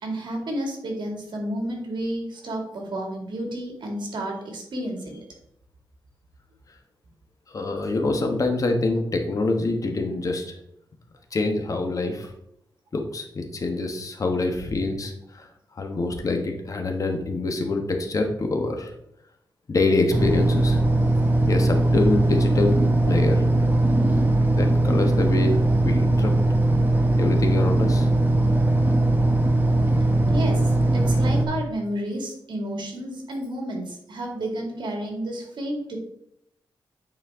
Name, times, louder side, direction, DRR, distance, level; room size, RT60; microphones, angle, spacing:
voice 1, 0.0-5.2 30.3-30.6 30.9-36.0, right 1 dB, 65° right, 1 dB, 2.2 m, -31 dB
voice 2, 7.5-10.4 11.3-12.3 12.9-15.5 15.8-18.9 19.7-20.8 21.5-23.5 24.5-26.3 27.2-28.1, left 3 dB, 45° left, 4 dB, 1.2 m, -25 dB
sound 1, 20.1-31.5, right 2 dB, 25° right, 1.0 m, -20 dB
9.4 x 4.3 x 3.6 m, 0.74 s
wide cardioid pair, 125°, 8 cm